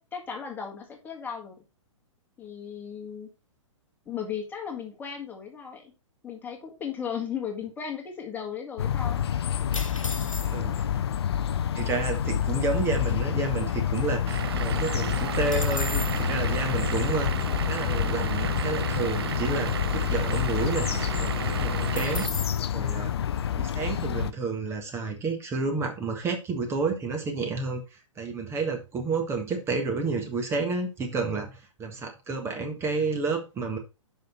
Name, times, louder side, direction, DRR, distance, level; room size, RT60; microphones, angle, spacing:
voice 1, 0.1-1.5 2.4-3.3 4.1-5.9 6.2-9.2, left 7 dB, 10° left, 1.9 m, -36 dB
sound 1, 8.8-24.3, left 9 dB, 50° left, 0.6 m, -28 dB
sound 2, 9.7-10.8 11.6-11.7 11.9-12.2 12.7-14.2 14.5-14.6 14.9-16.3 21.9-22.7, left 3 dB, 80° left, 1.3 m, -37 dB
voice 2, 10.5-10.8 11.7-23.1 23.5-33.8, right 4 dB, 15° right, 1.6 m, -30 dB
Vehicle / Engine, 14.3-22.3, right 10 dB, 50° right, 0.4 m, -34 dB
7.5 x 5.7 x 4.5 m
figure-of-eight pair, 115°, 16 cm